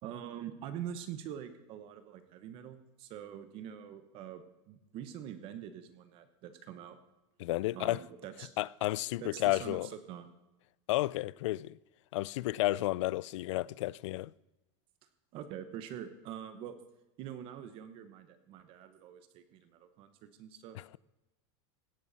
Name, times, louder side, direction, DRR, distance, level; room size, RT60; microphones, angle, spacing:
voice 1, 0.0-7.0 7.7-8.5 9.2-10.3 15.3-16.8 17.2-20.8, right 9 dB, 35° right, 1.2 m, -45 dB
voice 2, 7.4-8.0 8.6-9.9 10.9-11.8 12.1-14.3, left 17 dB, 75° left, 0.4 m, -32 dB
17.0 x 12.0 x 4.2 m
supercardioid pair, 165°, 16 cm